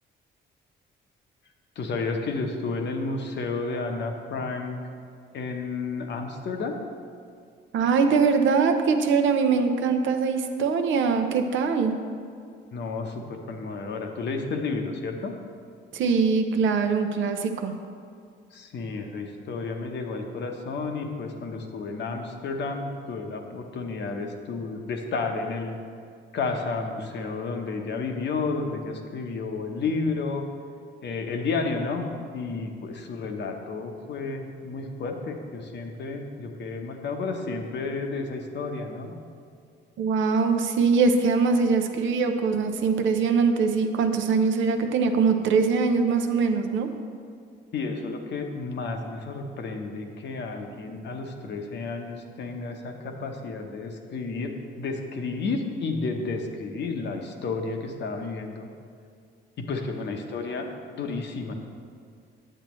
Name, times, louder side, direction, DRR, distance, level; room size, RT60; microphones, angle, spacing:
voice 1, 1.8-4.8 5.3-6.8 12.7-15.3 18.5-25.8 26.3-30.5 31.0-39.2 47.7-58.7 59.6-61.5, left 3 dB, 60° left, 4 dB, 0.9 m, -31 dB
voice 2, 7.7-11.9 15.9-17.7 40.0-46.9, right 5 dB, 75° right, 6 dB, 0.7 m, -22 dB
8.9 x 7.5 x 3.1 m, 2.2 s
cardioid pair, 90°, 20 cm